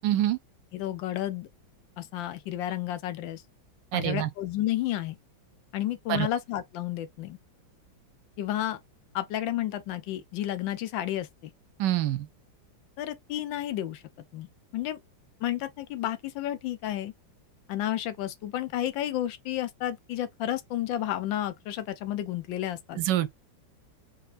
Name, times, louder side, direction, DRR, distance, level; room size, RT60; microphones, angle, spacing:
voice 1, 0.0-0.4 3.9-4.3 6.1-6.3 11.8-12.3 23.0-23.3, right 13 dB, 75° right, 1.1 m, -25 dB
voice 2, 0.7-1.5 2.0-3.4 3.9-5.2 5.7-7.4 8.4-8.8 9.1-11.5 13.0-14.0 14.3-14.5 14.7-15.0 15.4-17.1 17.7-23.0, left 12 dB, 80° left, 1.4 m, -31 dB
4.1 x 3.9 x 2.5 m
omnidirectional pair, 2.0 m